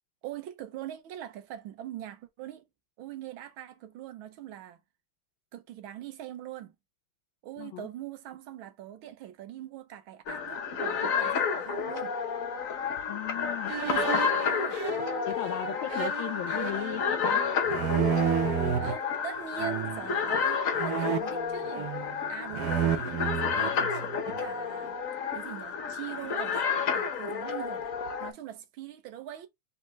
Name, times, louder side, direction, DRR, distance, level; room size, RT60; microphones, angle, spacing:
voice 1, 0.2-2.6 3.0-4.8 5.5-6.7 7.4-12.2 13.9-14.8 18.8-21.9 22.3-24.9 25.3-26.6 26.9-27.9 28.2-29.5, right 11 dB, 75° right, 1.6 m, -42 dB
voice 2, 7.6-7.9 13.1-13.7 14.0-14.2 15.2-17.4, left 13 dB, 75° left, 1.4 m, -36 dB
sound 1, 10.3-28.3, left 6 dB, 50° left, 1.1 m, -31 dB
sound 2, 13.7-18.9 19.6-20.1 20.7-22.2 22.5-24.5, right 8 dB, 60° right, 1.0 m, -31 dB
4.2 x 3.4 x 3.2 m
omnidirectional pair, 2.3 m